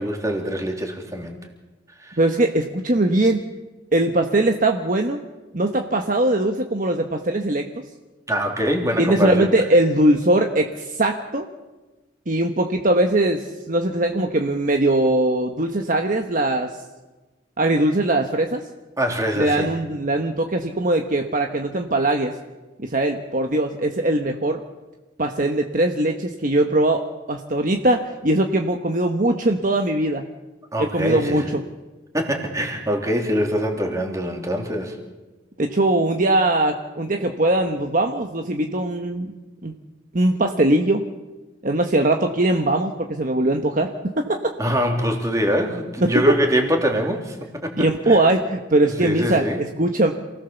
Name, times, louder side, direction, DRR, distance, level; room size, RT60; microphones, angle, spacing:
voice 1, 0.0-1.4 2.0-2.2 8.3-9.5 19.0-19.7 30.7-31.5 32.1-35.0 44.6-48.2 48.8-49.6, equal, 15° right, 2 dB, 3.3 m, -24 dB
voice 2, 2.2-3.4 3.9-5.2 5.5-7.7 9.0-11.5 12.3-16.7 17.6-18.6 19.4-22.4 22.8-24.6 25.2-30.3 30.8-31.6 35.6-39.3 39.6-39.7 40.1-41.1 41.6-44.5 46.0-46.2 47.8-50.1, right 1 dB, 45° right, 4 dB, 1.2 m, -21 dB
28.0 x 17.5 x 7.1 m, 1.2 s
head